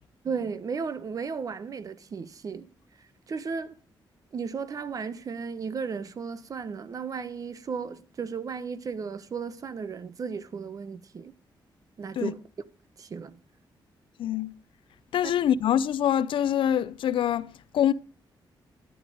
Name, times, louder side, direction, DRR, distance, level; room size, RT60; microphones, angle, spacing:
voice 1, 0.2-2.7 3.3-3.7 4.3-11.3 12.0-12.4 13.0-13.4, right 5 dB, 45° right, 1.0 m, -34 dB
voice 2, 14.2-14.5 15.1-17.9, left 10 dB, 85° left, 0.6 m, -25 dB
14.0 x 10.5 x 5.0 m
wide cardioid pair, 145°, 8 cm